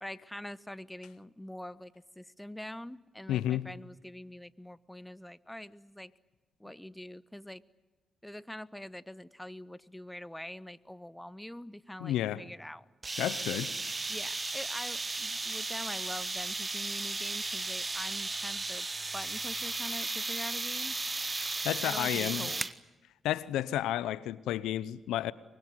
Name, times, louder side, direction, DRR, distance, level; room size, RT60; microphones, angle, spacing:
voice 1, 0.0-6.1 6.6-7.6 8.2-12.9 14.1-18.9 19.1-21.0 21.8-22.7, left 1 dB, 10° left, 1.1 m, -44 dB
voice 2, 3.3-3.7 12.0-12.4 13.2-13.7 21.6-22.5 23.2-25.3, left 13 dB, 80° left, 0.7 m, -31 dB
sound 1, 13.0-22.8, right 3 dB, 30° right, 1.4 m, -35 dB
24.5 x 24.0 x 8.0 m
hypercardioid pair, 45°, 0 cm